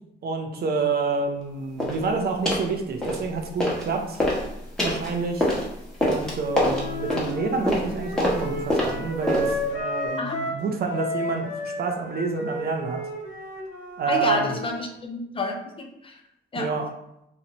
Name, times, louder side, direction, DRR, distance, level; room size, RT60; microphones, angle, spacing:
voice 1, 0.2-4.2 4.8-5.5 6.0-13.0 14.0-14.6 16.5-16.9, right 4 dB, 55° right, 4 dB, 0.5 m, -28 dB
sound 1, 1.8-2.0 2.5-2.7 3.0-3.9 4.1-9.7, left 1 dB, 5° left, 0.9 m, -26 dB
Wind instrument woodwind instrument, 6.6-10.6 10.9-14.8, left 1 dB, 70° left, 0.8 m, -33 dB
voice 2, 14.1-16.2 16.5-16.7, left 3 dB, 25° left, 3 dB, 0.4 m, -29 dB
2.6 x 2.1 x 2.8 m, 0.82 s
cardioid pair, 90°, 20 cm